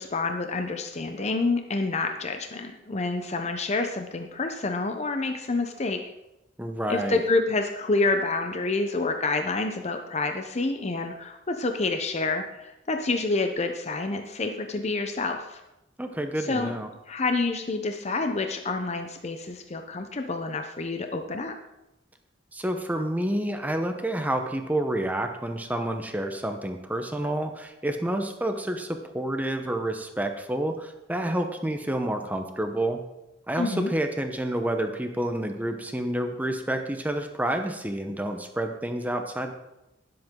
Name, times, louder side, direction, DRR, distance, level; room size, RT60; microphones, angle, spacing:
voice 1, 0.0-6.0 6.9-15.6 16.5-16.8 17.1-21.6 33.6-33.9, left 3 dB, 35° left, 5 dB, 0.7 m, -28 dB
voice 2, 6.6-7.2 16.0-16.9 22.5-33.0 33.5-39.5, right 1 dB, 10° right, 5 dB, 0.8 m, -29 dB
18.0 x 7.9 x 3.8 m, 0.92 s
head